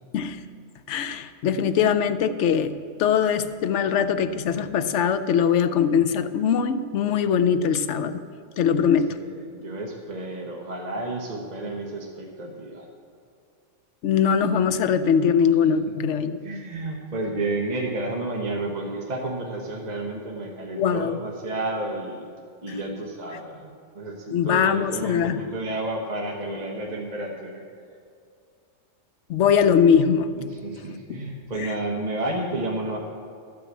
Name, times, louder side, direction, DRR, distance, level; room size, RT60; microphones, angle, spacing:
voice 1, 0.9-8.2 8.6-9.2 14.0-16.4 20.8-21.2 22.7-22.8 24.3-25.4 29.3-30.4 31.1-31.2 31.6-31.7, left 7 dB, 70° left, 11 dB, 0.9 m, -21 dB
voice 2, 8.7-12.9 15.6-15.7 16.4-22.3 22.6-27.6 30.4-33.0, right 2 dB, 35° right, -1 dB, 1.1 m, -31 dB
13.0 x 6.0 x 7.6 m, 2.3 s
omnidirectional pair, 1.3 m